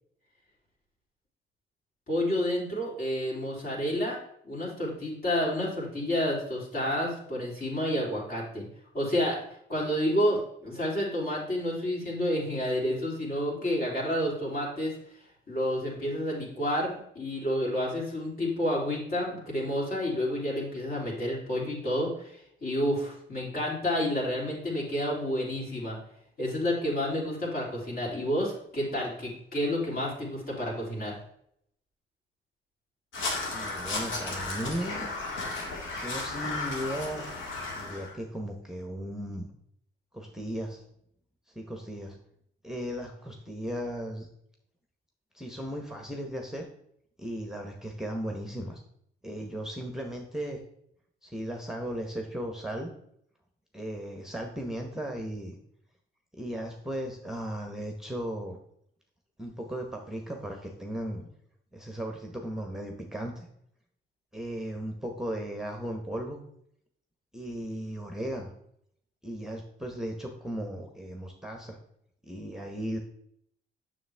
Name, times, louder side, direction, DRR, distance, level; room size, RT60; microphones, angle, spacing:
voice 1, 2.1-4.2 4.4-8.7 8.9-9.4 9.7-14.9 15.5-26.0 26.4-31.2, equal, 50° left, -3 dB, 3.1 m, -30 dB
Crow, 33.1-38.1, left 3 dB, 75° left, 1.8 m, -34 dB
voice 2, 33.5-35.1 36.0-37.4 37.7-39.5 40.1-40.8 41.5-42.2 42.6-44.3 45.3-46.6 47.2-48.8 49.2-50.6 51.2-52.9 53.7-55.6 56.4-58.6 59.4-61.3 61.7-63.5 64.3-66.4 67.3-68.5 69.2-71.8 72.3-73.0, equal, ahead, 3 dB, 0.9 m, -36 dB
7.1 x 6.3 x 3.4 m, 0.71 s
cardioid pair, 90°, 20 cm